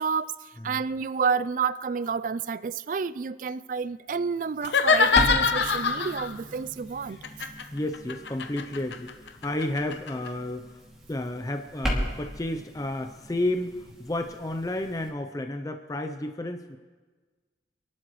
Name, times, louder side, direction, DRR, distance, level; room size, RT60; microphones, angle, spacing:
voice 1, 0.0-7.2, right 5 dB, 45° right, 0.3 m, -30 dB
sound 1, 4.6-6.3 7.2-10.3, left 5 dB, 80° left, 0.8 m, -24 dB
sound 2, 4.8-15.1, equal, 5° right, 2.4 m, -36 dB
voice 2, 7.7-10.8 11.1-16.8, left 1 dB, 20° left, 0.5 m, -32 dB
27.0 x 11.5 x 3.1 m
head